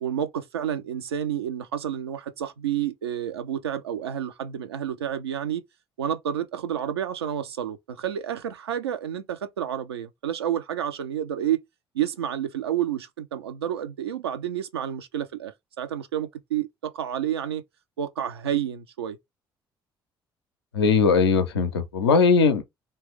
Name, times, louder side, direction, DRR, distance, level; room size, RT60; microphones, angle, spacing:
voice 1, 0.0-5.6 6.0-11.6 11.9-17.6 18.0-19.2, right 10 dB, 80° right, 0.4 m, -30 dB
voice 2, 20.7-22.6, left 5 dB, 80° left, 0.4 m, -19 dB
2.9 x 2.2 x 3.3 m
figure-of-eight pair, 50°, 13 cm